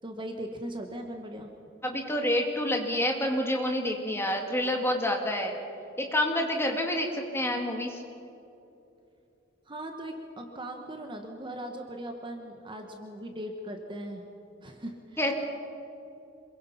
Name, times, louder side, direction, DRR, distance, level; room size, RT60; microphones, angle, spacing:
voice 1, 0.0-1.5 9.7-14.2 14.6-15.3, right 1 dB, 25° right, 3 dB, 1.5 m, -39 dB
voice 2, 1.8-5.5 6.0-8.0 15.2-15.3, left 1 dB, 15° left, 2 dB, 2.6 m, -28 dB
27.0 x 22.5 x 5.8 m, 2.7 s
head